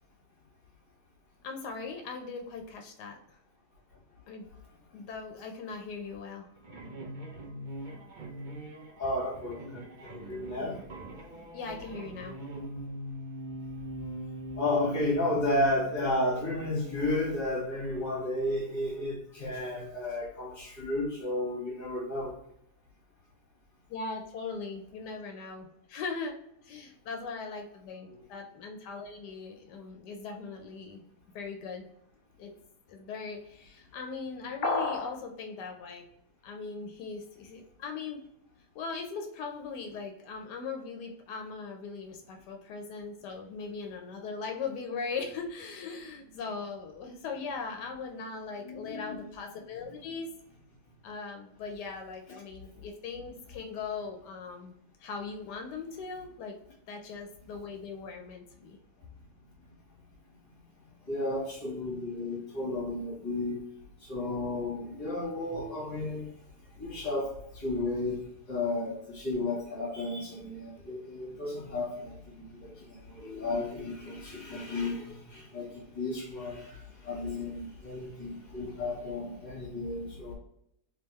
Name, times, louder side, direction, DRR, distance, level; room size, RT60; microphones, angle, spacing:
voice 1, 1.4-3.4 4.3-4.5 4.9-6.5 11.5-12.4 23.9-26.4 26.6-31.0 31.3-31.9 32.4-32.5 32.9-36.1 36.4-38.2 38.7-50.3 51.0-54.7 55.0-56.6 56.9-58.8, left 4 dB, 85° left, 4 dB, 1.2 m, -39 dB
sound 1, 6.6-19.0, right 1 dB, 55° right, 0.5 m, -42 dB
voice 2, 9.0-10.8 14.6-22.3 28.1-28.2 48.6-49.2 61.1-63.6 64.0-66.3 66.8-68.2 68.5-75.7 75.9-80.3, left 2 dB, 30° left, -3 dB, 1.6 m, -33 dB
sound 2, 34.6-35.2, left 3 dB, 60° left, 0.6 m, -29 dB
3.4 x 3.3 x 3.0 m, 0.75 s
omnidirectional pair, 1.7 m